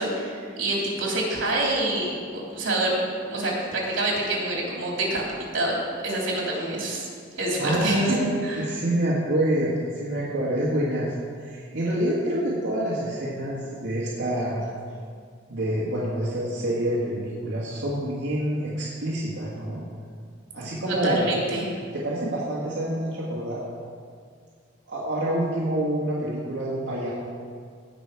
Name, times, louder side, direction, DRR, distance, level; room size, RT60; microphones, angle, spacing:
voice 1, 0.0-3.0 3.3-7.0 7.4-8.2 8.4-8.7 20.9-21.6, right 1 dB, 90° right, -3 dB, 3.2 m, -27 dB
voice 2, 7.6-11.1 11.4-14.7 15.5-19.8 20.5-21.3 21.9-23.6 24.9-27.1, right 1 dB, 70° right, -8 dB, 1.8 m, -27 dB
17.0 x 6.1 x 4.7 m, 2.1 s
head